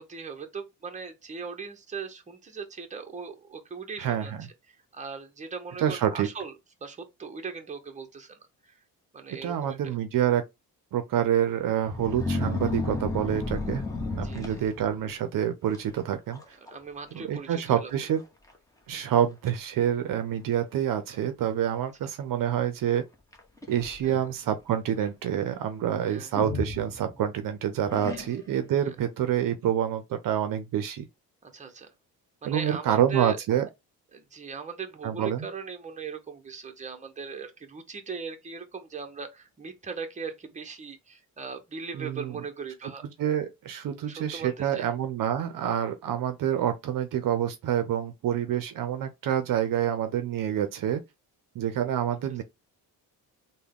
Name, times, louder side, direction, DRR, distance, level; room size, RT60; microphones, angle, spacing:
voice 1, 0.0-4.3 4.7-6.5 6.8-8.8 9.1-10.0 14.2-14.6 16.6-17.9 24.0-24.1 26.0-26.4 28.1-28.2 31.4-31.9 32.4-33.4 34.1-43.0 44.1-44.8, right 5 dB, 20° right, 0.8 m, -39 dB
voice 2, 4.0-4.4 5.8-6.3 9.4-10.4 10.9-13.8 14.1-16.6 17.1-18.2 18.9-23.0 23.7-31.1 32.4-33.7 35.0-35.5 41.9-42.4 43.2-51.0 51.5-52.4, right 10 dB, 60° right, 0.6 m, -27 dB
sound 1, 11.8-15.1 15.7-16.0 16.3-16.7 17.0-17.1 17.9-18.0 18.5-18.6 19.1-19.6 20.4-20.5 23.3-24.3 26.3-27.4 27.9-28.6, left 2 dB, 10° left, 1.0 m, -33 dB
3.5 x 2.2 x 3.5 m
cardioid pair, 90°, 38 cm